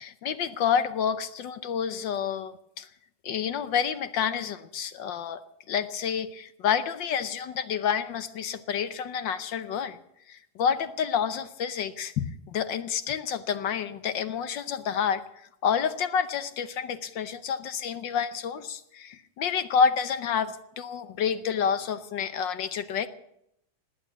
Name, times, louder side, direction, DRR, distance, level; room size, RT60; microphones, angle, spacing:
voice 1, 0.0-2.9 3.2-5.4 5.7-10.0 10.3-23.1, left 7 dB, 65° left, 12 dB, 1.4 m, -29 dB
19.0 x 8.9 x 8.2 m, 0.77 s
omnidirectional pair, 2.3 m